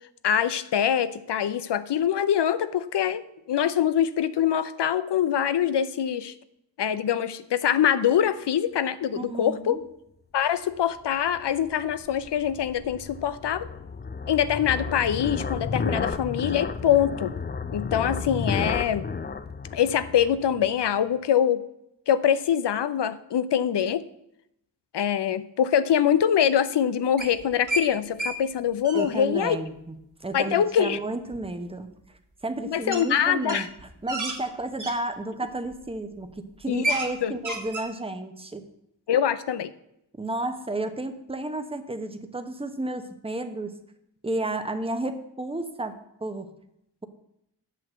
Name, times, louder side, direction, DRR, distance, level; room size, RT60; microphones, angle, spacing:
voice 1, 0.2-3.2 3.5-6.3 6.8-9.8 10.3-13.7 14.3-17.3 17.7-19.1 19.7-21.6 22.1-24.0 24.9-29.6 30.3-31.0 32.7-33.7 36.7-36.8 37.2-37.4 39.1-39.7, left 9 dB, 70° left, 14 dB, 0.7 m, -24 dB
voice 2, 9.2-9.8 28.9-30.0 30.2-31.9 32.4-33.7 34.0-38.6 40.2-43.8 44.2-46.5, right 2 dB, 15° right, 8 dB, 1.1 m, -32 dB
sound 1, 11.3-20.8, left 5 dB, 25° left, 0.5 m, -32 dB
sound 2, 27.2-27.9 28.2-28.3 28.6-29.1 31.3-31.4 32.9-33.0 33.4-35.0 35.6-35.9 36.2-36.3 36.6-37.1 37.4-37.9, right 1 dB, 45° right, 2.0 m, -30 dB
7.7 x 5.9 x 7.8 m, 0.79 s
cardioid pair, 55°, 43 cm